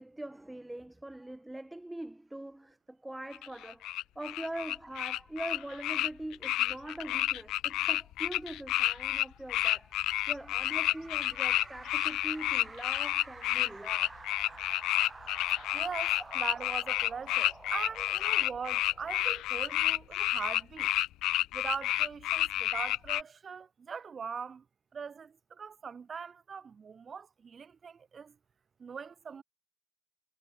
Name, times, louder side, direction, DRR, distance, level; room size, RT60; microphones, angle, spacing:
voice 1, 0.0-14.2, right 1 dB, 10° right, 6.8 m, -43 dB
sound 1, 3.3-23.2, left 15 dB, 85° left, 2.5 m, -30 dB
sound 2, 9.9-19.6, right 3 dB, 25° right, 6.2 m, -50 dB
voice 2, 15.7-20.9 21.5-24.6 24.9-28.4 28.8-29.4, right 6 dB, 40° right, 5.8 m, -41 dB
cardioid pair, 95°, 0 cm